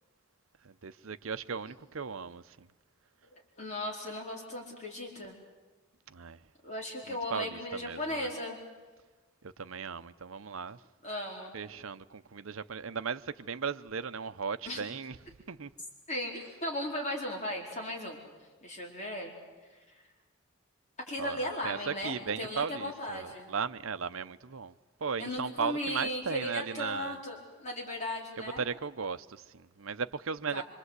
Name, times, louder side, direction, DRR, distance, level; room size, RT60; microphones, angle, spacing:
voice 1, 0.8-2.4 6.1-6.4 7.1-8.3 9.6-10.8 11.5-15.2 15.5-15.7 21.2-24.7 25.0-27.2 28.4-30.6, right 5 dB, 70° right, 0.8 m, -36 dB
voice 2, 3.6-5.3 6.6-8.6 11.0-11.6 14.6-14.9 16.1-18.2 18.6-19.3 19.7-20.0 21.1-23.5 25.2-28.6 30.5-30.6, left 1 dB, 35° left, 4.4 m, -37 dB
26.0 x 25.5 x 8.2 m
head